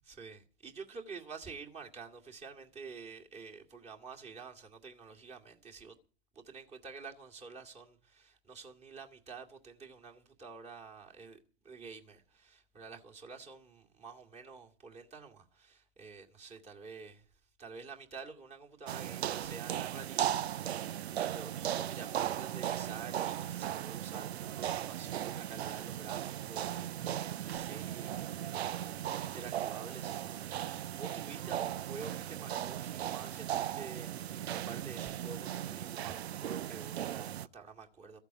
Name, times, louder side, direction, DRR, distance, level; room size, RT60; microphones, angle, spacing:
voice 1, 0.0-6.0 6.3-11.4 11.6-17.2 17.6-38.2, right 5 dB, 20° right, 2.2 m, -49 dB
sound 1, 18.9-37.5, right 11 dB, 80° right, 0.6 m, -37 dB
14.5 x 8.1 x 7.9 m
hypercardioid pair, 120°, 32 cm